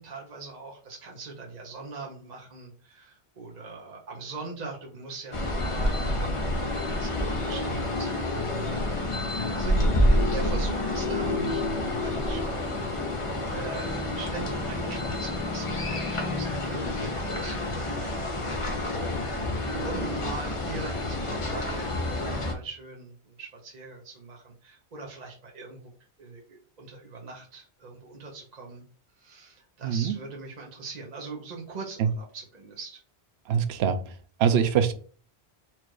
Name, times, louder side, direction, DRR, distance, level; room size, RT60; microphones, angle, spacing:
voice 1, 0.0-11.7 12.0-12.4 13.5-19.0 19.4-25.8 26.2-28.8 29.2-33.0, right 3 dB, 40° right, -1 dB, 0.9 m, -42 dB
sound 1, 5.3-22.5, left 1 dB, 30° left, 0.8 m, -28 dB
voice 2, 29.8-30.1 33.5-34.0 34.4-34.9, right 7 dB, 70° right, 8 dB, 0.8 m, -23 dB
4.5 x 2.5 x 4.6 m, 0.42 s
omnidirectional pair, 1.1 m